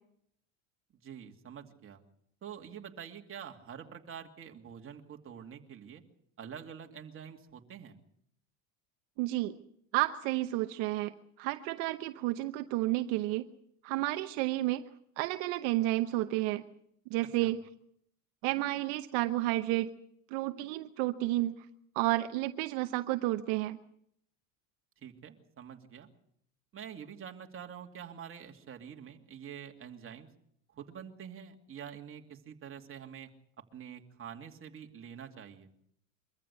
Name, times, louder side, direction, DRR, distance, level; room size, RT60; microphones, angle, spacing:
voice 1, 1.0-2.0 2.4-6.0 6.4-7.9 17.4-17.5 25.0-26.1 26.7-30.3 30.7-33.3 33.6-35.7, right 8 dB, 30° right, 3 dB, 2.6 m, -46 dB
voice 2, 9.2-9.6 9.9-13.5 13.8-14.8 15.2-16.6 17.1-17.6 18.4-19.9 20.3-21.7 21.9-23.8, right 17 dB, 70° right, 9 dB, 1.0 m, -31 dB
24.0 x 14.5 x 8.3 m, 0.71 s
supercardioid pair, 115°, 41 cm